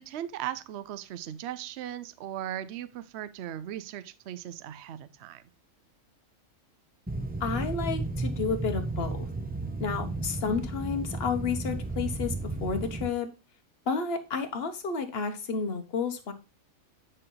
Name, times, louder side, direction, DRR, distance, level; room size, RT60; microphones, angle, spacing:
voice 1, 0.0-5.4, right 11 dB, 60° right, 0.8 m, -38 dB
sound 1, 7.1-13.1, right 2 dB, 15° right, 0.3 m, -33 dB
voice 2, 7.4-9.2 9.8-13.3 13.9-16.3, left 5 dB, 50° left, 1.3 m, -31 dB
9.7 x 4.5 x 3.9 m
omnidirectional pair, 1.4 m